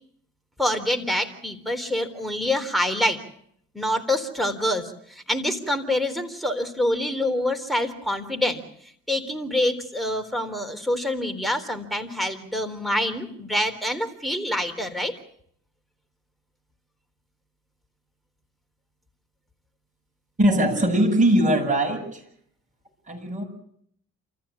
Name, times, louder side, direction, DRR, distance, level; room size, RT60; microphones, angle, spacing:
voice 1, 0.6-3.2 3.7-8.6 9.1-15.1, left 1 dB, ahead, 5 dB, 3.8 m, -26 dB
voice 2, 20.4-22.2 23.1-23.4, right 1 dB, 25° right, 3 dB, 7.7 m, -21 dB
28.5 x 15.0 x 8.6 m, 0.68 s
cardioid pair, 90°, 30 cm